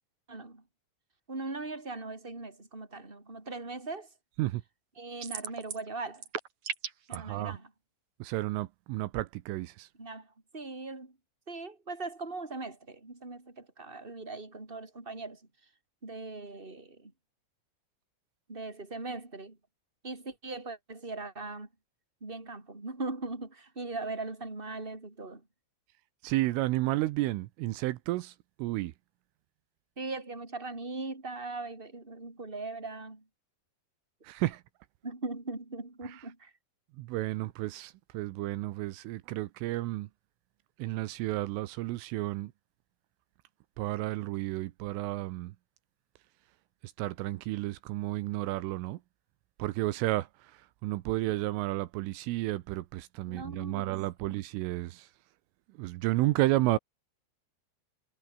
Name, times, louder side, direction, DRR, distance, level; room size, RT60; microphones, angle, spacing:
voice 1, 0.3-0.6 1.3-4.1 5.0-6.3 7.1-7.7 9.9-11.2 11.5-15.4 16.0-17.1 18.5-19.6 20.0-21.7 22.2-25.4 30.0-33.2 35.0-36.5 53.2-53.9 54.2-54.4, right 3 dB, 10° right, 4.7 m, -40 dB
sound 1, 5.2-5.9 6.1-7.2, right 8 dB, 50° right, 2.6 m, -36 dB
voice 2, 7.1-7.6 8.2-9.9 26.2-28.3 28.6-28.9 34.3-34.6 37.0-40.1 40.8-42.5 43.8-45.5 47.0-49.0 49.6-50.3 50.8-55.0 55.8-56.8, right 18 dB, 85° right, 3.4 m, -31 dB
omnidirectional pair, 5.9 m